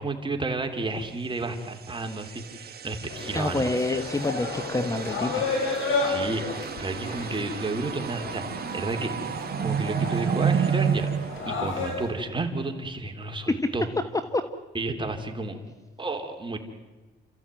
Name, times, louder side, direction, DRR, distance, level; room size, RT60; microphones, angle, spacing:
voice 1, 0.0-3.7 6.0-9.3 9.6-11.1 11.5-13.9 14.7-15.6 16.0-16.6, right 2 dB, 25° right, 4 dB, 3.4 m, -31 dB
sound 1, 1.6-12.3, right 7 dB, 50° right, 1.6 m, -31 dB
sound 2, 3.1-12.1, left 3 dB, 80° left, 5.0 m, -32 dB
voice 2, 3.3-5.5 13.5-13.6 14.3-14.4, left 2 dB, 15° left, 10 dB, 1.2 m, -27 dB
29.0 x 14.5 x 9.2 m, 1.3 s
cardioid pair, 90°, 20 cm